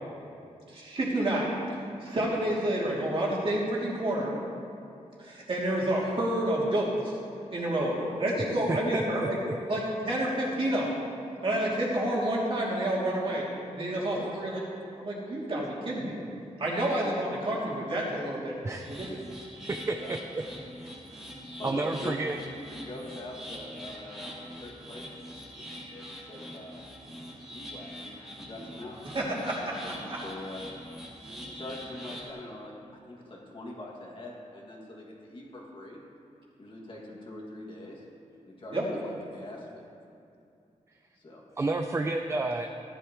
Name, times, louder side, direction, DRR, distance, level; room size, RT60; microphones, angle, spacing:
voice 1, 0.7-1.5 2.0-4.3 5.2-7.2 7.5-9.4 9.7-11.0 11.4-13.4 13.7-14.6 15.0-16.2 16.6-18.5 18.9-19.1 29.1-29.7 30.1-30.2 31.2-31.4 38.7-38.8, right 1 dB, 45° right, -6 dB, 2.8 m, -29 dB
voice 2, 7.9-8.4 11.3-11.6 13.9-14.4 19.9-20.2 21.6-22.2 22.5-26.8 27.5-30.6 31.5-36.0 36.6-38.0 38.5-39.9 41.2-41.4, left 1 dB, 40° left, -3 dB, 2.2 m, -43 dB
voice 3, 8.7-9.8 18.6-19.2 19.6-20.2 20.8-21.0 21.6-22.4 41.6-42.7, right 2 dB, 20° right, 4 dB, 0.5 m, -31 dB
sound 1, 18.7-32.3, equal, 5° right, 2.3 m, -44 dB
17.0 x 11.5 x 3.1 m, 2.6 s
wide cardioid pair, 170°, 13 cm